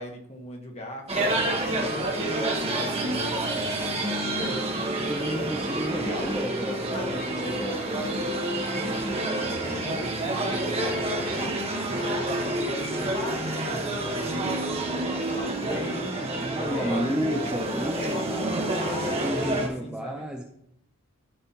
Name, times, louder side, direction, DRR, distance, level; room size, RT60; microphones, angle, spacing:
voice 1, 0.0-1.4 1.7-6.3 6.9-11.0 11.3-14.6 14.9-17.5 17.9-19.3 19.6-20.3, left 2 dB, 30° left, 2 dB, 1.4 m, -39 dB
sound 1, 1.1-19.7, right 1 dB, 25° right, 1.3 m, -28 dB
voice 2, 5.0-8.1 15.7-20.4, equal, 5° right, 0 dB, 0.6 m, -33 dB
13.5 x 5.5 x 2.9 m, 0.71 s
head